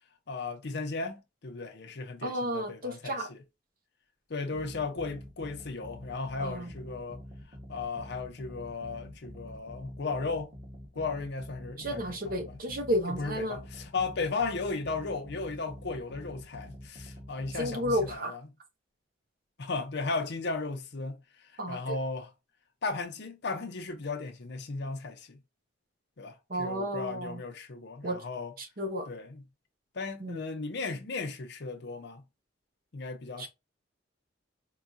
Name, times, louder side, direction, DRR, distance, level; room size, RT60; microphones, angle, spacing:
voice 1, 0.3-3.4 4.3-7.2 7.7-10.5 10.9-12.6 13.1-18.4 19.6-22.3 22.8-25.4 26.2-28.5 29.1-29.4 29.9-32.2 32.9-33.5, left 3 dB, 60° left, 0.7 m, -36 dB
voice 2, 2.2-3.3 6.4-6.7 11.8-13.6 17.5-18.4 21.6-22.0 26.5-27.4 28.0-28.2 28.6-29.1 30.2-30.4 33.4-33.5, equal, 50° right, 0.9 m, -32 dB
sound 1, 4.5-18.1, equal, 30° right, 1.4 m, -47 dB
4.6 x 2.3 x 2.6 m
head